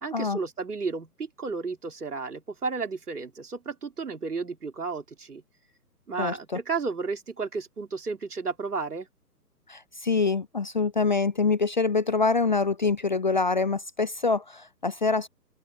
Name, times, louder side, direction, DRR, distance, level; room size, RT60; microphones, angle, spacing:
voice 1, 0.0-5.4 6.1-9.1, right 4 dB, 65° right, 3.7 m, -33 dB
voice 2, 6.2-6.6 9.7-15.3, left 4 dB, 30° left, 0.6 m, -25 dB
open air
figure-of-eight pair, 135°, 49 cm